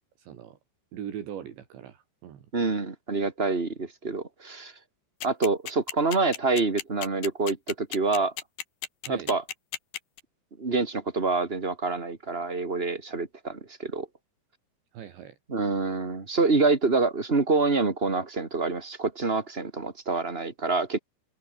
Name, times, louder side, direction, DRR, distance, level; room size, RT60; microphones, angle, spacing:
voice 1, 0.2-0.6 0.9-2.5 9.0-9.4 14.9-15.4, right 9 dB, 75° right, 5.0 m, -40 dB
voice 2, 2.5-4.7 5.2-8.3 9.1-9.4 10.6-14.1 15.5-21.0, right 3 dB, 35° right, 0.9 m, -26 dB
sound 1, 5.2-10.2, left 10 dB, 60° left, 3.4 m, -34 dB
omnidirectional pair, 5.3 m